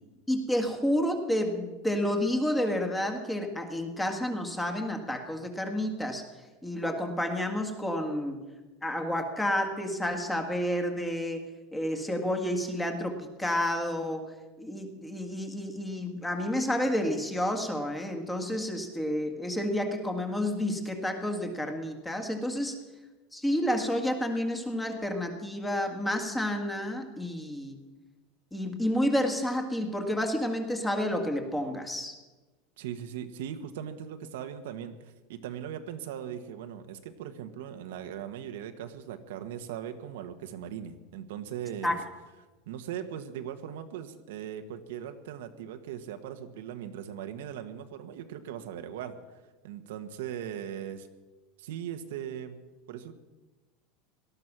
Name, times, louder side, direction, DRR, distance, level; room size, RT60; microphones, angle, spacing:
voice 1, 0.3-6.2 6.6-8.4 8.8-11.4 11.7-22.7 23.3-27.8 28.5-32.1 41.8-42.0, left 1 dB, 5° left, 4 dB, 1.9 m, -30 dB
voice 2, 32.8-42.0 42.7-49.1 49.6-51.1 51.6-52.6 52.9-53.1, right 9 dB, 85° right, 7 dB, 1.4 m, -39 dB
18.0 x 12.5 x 6.1 m, 1.2 s
supercardioid pair, 155°, 0 cm